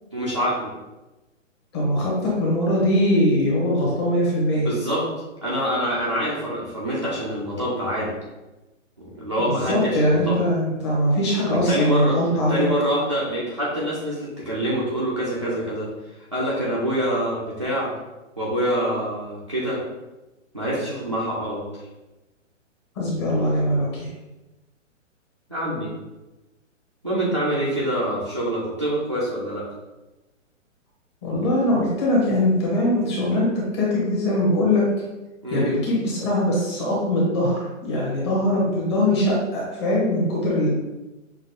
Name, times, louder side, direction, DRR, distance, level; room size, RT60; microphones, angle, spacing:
voice 1, 0.1-0.7 4.6-5.1 5.4-8.2 9.0-10.4 11.7-17.9 18.4-19.8 20.5-21.7 25.5-25.9 27.0-29.7 35.4-35.7, equal, 25° right, -7 dB, 0.4 m, -25 dB
voice 2, 1.7-4.7 9.4-12.6 23.0-24.1 31.2-33.5 33.7-34.9 35.5-40.7, left 1 dB, 20° left, -5 dB, 0.9 m, -21 dB
6.3 x 2.4 x 2.8 m, 1.0 s
hypercardioid pair, 165°, 39 cm